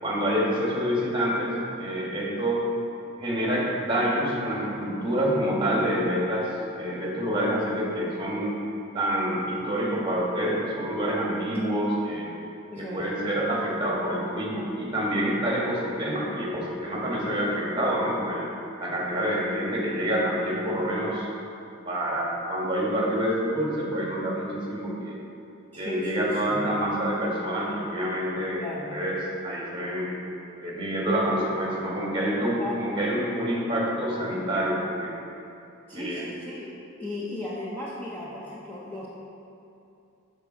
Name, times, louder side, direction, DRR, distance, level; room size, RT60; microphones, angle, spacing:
voice 1, 0.0-2.6 3.2-8.6 8.9-12.3 12.8-18.5 18.8-21.3 21.9-25.2 25.8-28.6 28.9-29.2 29.4-30.1 30.6-35.1 35.9-36.2, equal, 20° right, -4 dB, 1.3 m, -27 dB
voice 2, 12.7-13.1 25.7-26.7 28.6-28.9 32.6-32.8 35.9-36.7 37.0-39.1, left 1 dB, 10° left, -7 dB, 0.7 m, -36 dB
6.7 x 4.4 x 6.0 m, 2.7 s
head